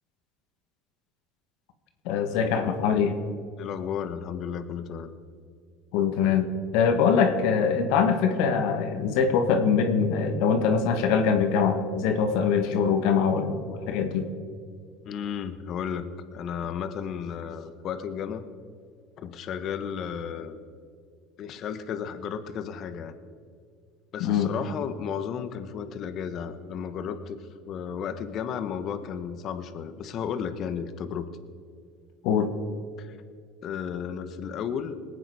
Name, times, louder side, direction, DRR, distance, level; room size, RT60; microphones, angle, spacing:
voice 1, 2.0-3.2 5.9-6.5 6.7-14.3 24.2-24.5 32.2-32.5, left 6 dB, 75° left, 7 dB, 1.5 m, -23 dB
voice 2, 3.6-5.1 15.0-18.5 19.2-20.6 21.4-23.1 24.1-31.3 33.0-33.2 33.6-35.0, left 7 dB, 50° left, 10 dB, 1.1 m, -33 dB
20.5 x 8.8 x 4.9 m, 2.2 s
supercardioid pair, 95°, 0 cm